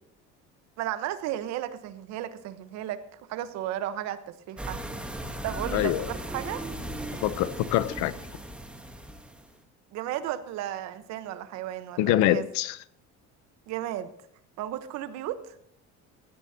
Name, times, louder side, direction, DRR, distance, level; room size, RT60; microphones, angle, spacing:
voice 1, 0.8-3.0 3.3-4.8 5.4-6.6 9.9-12.5 13.7-14.1 14.6-15.5, right 12 dB, 65° right, 1.2 m, -34 dB
sound 1, 4.6-9.5, right 1 dB, 5° right, 1.2 m, -37 dB
voice 2, 5.7-6.1 7.2-8.1 12.0-12.8, left 14 dB, 75° left, 0.8 m, -25 dB
16.5 x 12.0 x 2.9 m
cardioid pair, 150°, 29 cm